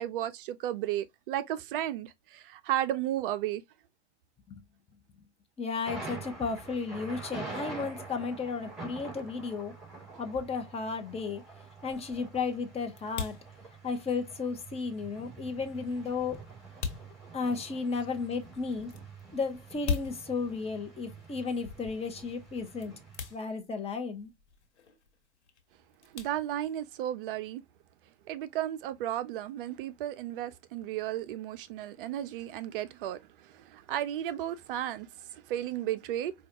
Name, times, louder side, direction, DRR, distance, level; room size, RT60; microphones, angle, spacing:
voice 1, 0.0-3.6 26.1-27.6 28.3-36.3, right 12 dB, 50° right, 0.4 m, -34 dB
voice 2, 5.6-9.7 10.2-11.4 11.8-13.4 13.8-16.4 17.3-18.9 19.3-22.9 23.3-24.3, left 4 dB, 15° left, 0.8 m, -34 dB
Thunder, 5.9-23.3, right 3 dB, ahead, 2.4 m, -46 dB
sound 1, 10.6-27.1, left 6 dB, 70° left, 1.3 m, -43 dB
4.8 x 2.3 x 2.8 m
hypercardioid pair, 100°, 35 cm